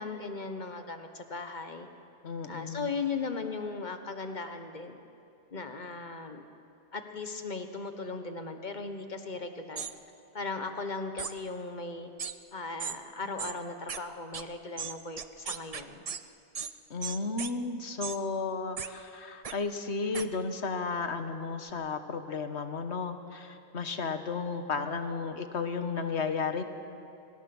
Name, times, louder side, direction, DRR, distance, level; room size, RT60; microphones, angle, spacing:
voice 1, 0.0-1.9 2.5-5.0 5.5-6.4 6.9-9.9 10.3-12.1 12.5-16.0, left 4 dB, 45° left, 7 dB, 1.4 m, -37 dB
voice 2, 2.2-2.9 16.9-26.6, left 4 dB, 75° left, 8 dB, 1.5 m, -33 dB
sound 1, 9.8-9.9 11.2-11.3 12.2-12.3 12.8-13.0 13.4-13.5 13.9-14.0 14.3-14.4 14.8-16.2 16.5-16.7 17.0-17.5 18.0-18.2 18.8-18.9 19.4-19.5 20.1-20.2, right 6 dB, 40° right, 0.6 m, -36 dB
24.5 x 19.5 x 6.2 m, 2.5 s
omnidirectional pair, 1.1 m